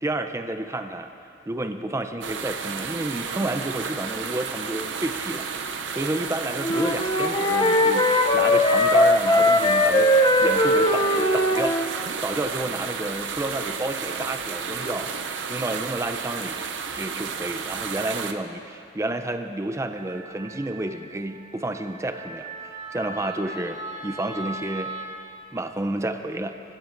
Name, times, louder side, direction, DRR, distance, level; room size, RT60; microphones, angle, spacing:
voice 1, 0.0-1.1 1.5-5.5 5.9-10.1 10.4-11.7 12.2-15.1 15.5-16.6 16.9-24.9 25.5-26.6, right 1 dB, 15° right, 7 dB, 0.5 m, -30 dB
sound 1, 2.2-18.3, right 6 dB, 75° right, 0.6 m, -32 dB
Wind instrument woodwind instrument, 6.6-11.9, left 1 dB, 25° left, 0.6 m, -20 dB
Wind instrument woodwind instrument 2, 19.9-25.1, right 2 dB, 40° right, 2.2 m, -38 dB
23.0 x 10.0 x 2.6 m, 2.8 s
head